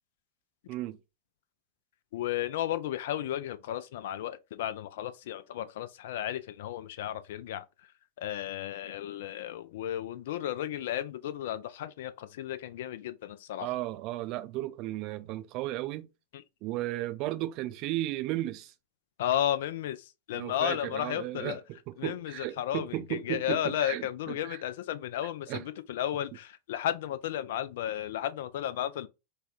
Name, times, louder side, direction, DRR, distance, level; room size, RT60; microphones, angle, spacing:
voice 1, 2.1-7.6 8.2-13.7 16.3-16.4 19.2-21.6 22.0-29.1, left 11 dB, 55° left, 0.4 m, -33 dB
voice 2, 13.6-16.1 16.6-18.7 20.3-24.6 25.5-25.6, right 16 dB, 40° right, 0.4 m, -35 dB
3.3 x 2.2 x 4.0 m
figure-of-eight pair, 90°, 0 cm